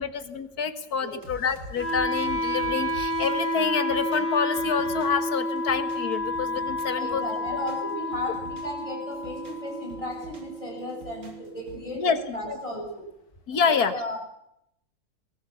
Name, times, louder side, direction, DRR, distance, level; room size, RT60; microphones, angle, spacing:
voice 1, 0.0-7.2 11.9-12.6 13.5-13.9, left 6 dB, 60° left, 11 dB, 2.1 m, -27 dB
voice 2, 0.9-1.3 7.0-13.1 13.7-14.2, left 1 dB, 15° left, -1 dB, 7.3 m, -35 dB
sound 1, 1.2-5.3 5.6-7.0 7.3-8.8 9.1-10.6 10.9-11.9, equal, 55° right, 4.2 m, -45 dB
Wind instrument woodwind instrument, 1.8-11.8, left 1 dB, 85° right, 5.1 m, -30 dB
21.5 x 18.5 x 8.3 m, 0.77 s
omnidirectional pair, 1.9 m